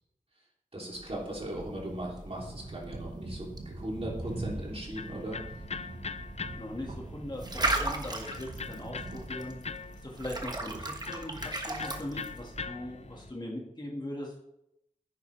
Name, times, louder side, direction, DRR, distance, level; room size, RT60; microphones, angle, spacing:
voice 1, 0.7-5.4, right 1 dB, 45° right, -3 dB, 3.1 m, -38 dB
sound 1, 0.9-12.6, right 2 dB, 30° right, 1.3 m, -38 dB
sound 2, 1.5-13.3, right 2 dB, 65° right, 1.3 m, -44 dB
Electric guitar, 4.2-13.3, left 5 dB, 50° left, 0.5 m, -43 dB
voice 2, 6.6-9.6 10.0-14.4, left 1 dB, 30° left, -1 dB, 2.0 m, -40 dB
9.9 x 9.8 x 3.4 m, 0.81 s
wide cardioid pair, 75°, 14 cm